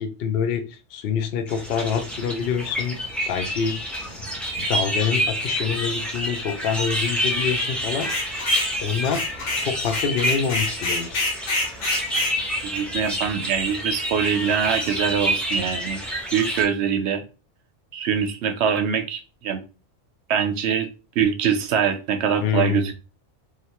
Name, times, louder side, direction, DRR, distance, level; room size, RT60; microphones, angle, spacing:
voice 1, 0.0-3.0 3.3-4.1 4.6-8.5 8.8-9.2 9.6-11.3 22.4-22.9, left 7 dB, 60° left, 7 dB, 0.7 m, -26 dB
sound 1, 1.5-16.6, equal, ahead, 0.4 m, -28 dB
sound 2, 8.0-8.7 9.0-12.4, left 2 dB, 90° left, 1.2 m, -26 dB
voice 2, 12.6-16.0 16.3-17.2 17.9-19.6 20.3-20.9 21.2-22.9, right 7 dB, 65° right, 7 dB, 0.8 m, -23 dB
3.2 x 2.6 x 2.9 m, 0.32 s
omnidirectional pair, 1.3 m